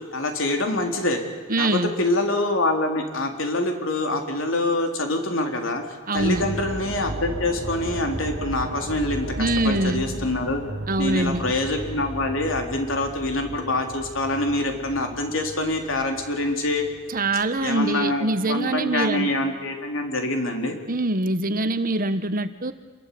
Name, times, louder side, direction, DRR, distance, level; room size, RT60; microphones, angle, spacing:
voice 1, 0.1-1.2 1.6-5.8 6.1-10.6 11.0-16.9 17.6-20.8, left 2 dB, 70° left, 4 dB, 3.8 m, -25 dB
voice 2, 1.5-1.9 6.1-6.5 9.4-10.0 10.9-11.5 17.1-19.3 20.9-22.7, right 2 dB, 45° right, 11 dB, 1.3 m, -24 dB
sound 1, 6.2-17.8 18.1-18.2, right 1 dB, 60° right, 2.1 m, -35 dB
28.0 x 22.5 x 8.7 m, 1.4 s
head